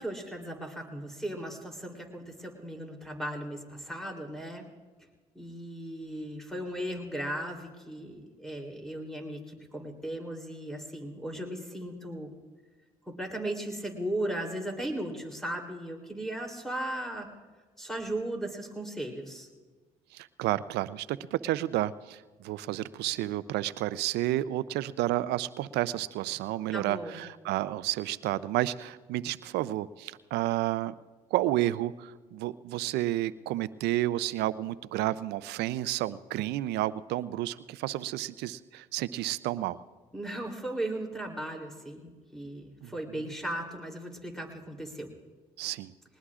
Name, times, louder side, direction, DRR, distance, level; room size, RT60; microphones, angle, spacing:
voice 1, 0.0-4.6 5.3-12.3 13.1-17.3 17.8-19.5 26.7-27.2 40.1-45.1, right 1 dB, ahead, 2 dB, 3.3 m, -37 dB
voice 2, 20.1-30.9 31.3-39.8 42.8-42.9 45.6-45.9, right 15 dB, 80° right, 16 dB, 0.5 m, -31 dB
21.0 x 19.5 x 2.5 m, 1.3 s
supercardioid pair, 70°, 17 cm